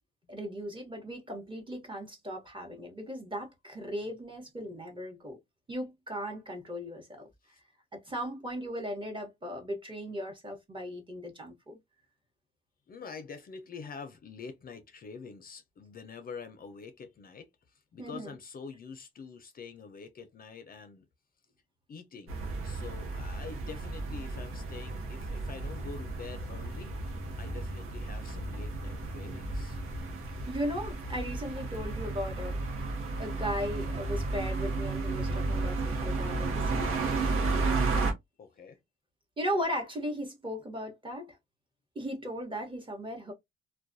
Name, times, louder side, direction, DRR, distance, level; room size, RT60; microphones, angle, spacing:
voice 1, 0.3-5.4 5.7-7.2 7.9-11.8 18.0-18.3 30.5-32.6 33.2-36.9 39.4-41.4 41.9-43.3, equal, 25° right, 1.0 m, -37 dB
voice 2, 12.9-21.1 21.9-22.4 22.6-27.0 27.4-29.8 38.4-38.8, left 5 dB, 45° left, 0.5 m, -46 dB
sound 1, 22.3-38.1, right 3 dB, 90° right, 0.8 m, -33 dB
2.3 x 2.2 x 2.5 m
cardioid pair, 120°, 21 cm